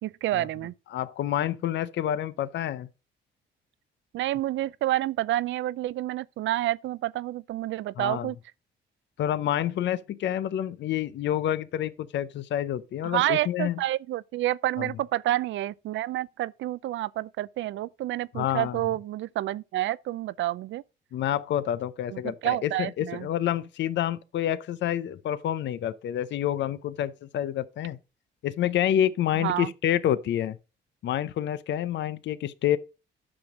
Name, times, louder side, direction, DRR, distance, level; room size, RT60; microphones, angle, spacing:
voice 1, 0.0-0.7 4.1-8.4 13.0-20.8 22.1-23.3 29.3-29.7, right 14 dB, 75° right, 0.5 m, -29 dB
voice 2, 0.9-2.9 8.0-8.3 9.2-13.8 14.8-14.9 18.3-18.8 21.1-28.0 28.4-30.6 31.0-32.8, left 11 dB, 65° left, 0.6 m, -28 dB
8.7 x 6.1 x 5.0 m
cardioid pair, 90°, 20 cm